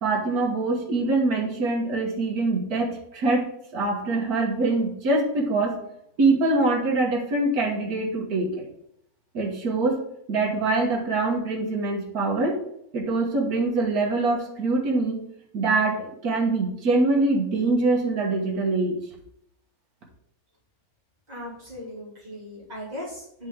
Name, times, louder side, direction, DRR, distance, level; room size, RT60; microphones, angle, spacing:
voice 1, 0.0-5.8 6.2-8.7 9.3-10.0 10.3-12.6 12.9-15.2 15.5-19.0, right 3 dB, 85° right, -1 dB, 1.8 m, -24 dB
voice 2, 21.3-23.5, left 1 dB, 25° right, -6 dB, 2.8 m, -38 dB
9.0 x 5.2 x 3.6 m, 0.72 s
omnidirectional pair, 1.5 m